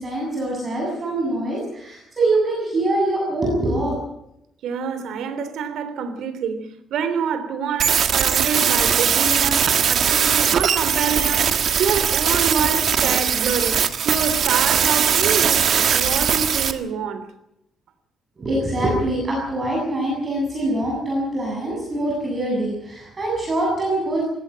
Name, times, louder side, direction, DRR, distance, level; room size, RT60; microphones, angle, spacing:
voice 1, 0.0-4.0 18.4-24.2, right 1 dB, 25° right, 7.4 m, -24 dB
voice 2, 4.6-15.7 15.9-17.3, right 6 dB, 75° right, 3.4 m, -26 dB
sound 1, 7.8-16.7, right 7 dB, 45° right, 1.6 m, -20 dB
21.0 x 17.0 x 8.8 m
cardioid pair, 170°, 0 cm